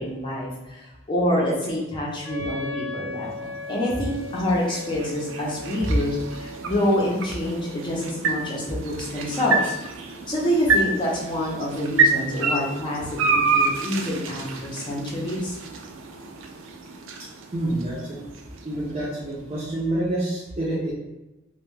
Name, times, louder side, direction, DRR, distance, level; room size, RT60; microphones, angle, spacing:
voice 1, 0.0-9.7 10.3-15.6, left 1 dB, 25° left, -4 dB, 0.6 m, -27 dB
Wind instrument woodwind instrument, 2.2-7.9, left 2 dB, 75° left, 0.7 m, -38 dB
sound 1, 3.1-19.3, right 4 dB, 85° right, 0.4 m, -28 dB
voice 2, 17.2-18.3 18.6-20.9, right 1 dB, 30° right, -7 dB, 0.5 m, -28 dB
2.2 x 2.2 x 3.1 m, 1.0 s
head